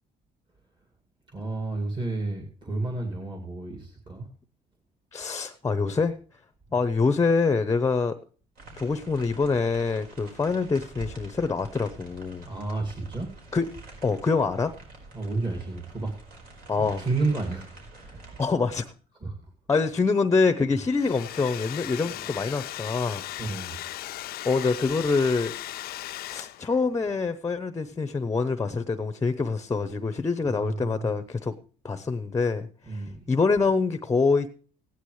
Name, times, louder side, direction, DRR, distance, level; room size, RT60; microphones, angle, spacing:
voice 1, 1.3-4.3 12.5-13.3 15.1-16.1 16.7-17.7 17.9-18.3 19.2-19.3 20.7-20.8 22.0-22.2 23.4-23.8 30.4-31.1 32.9-33.3, right 3 dB, 25° right, 3 dB, 2.1 m, -31 dB
voice 2, 5.1-6.2 6.7-8.1 8.8-12.5 13.5-13.7 14.0-14.7 16.7-17.0 18.4-18.9 19.7-23.2 24.4-25.5 26.3-31.5 31.8-34.5, left 4 dB, 20° left, 12 dB, 0.7 m, -25 dB
sound 1, 8.5-18.4, right 2 dB, 65° right, 4.5 m, -47 dB
Domestic sounds home sounds, 20.8-26.8, left 15 dB, 65° left, 0.4 m, -37 dB
16.5 x 10.0 x 3.2 m, 0.40 s
cardioid pair, 110°, 17 cm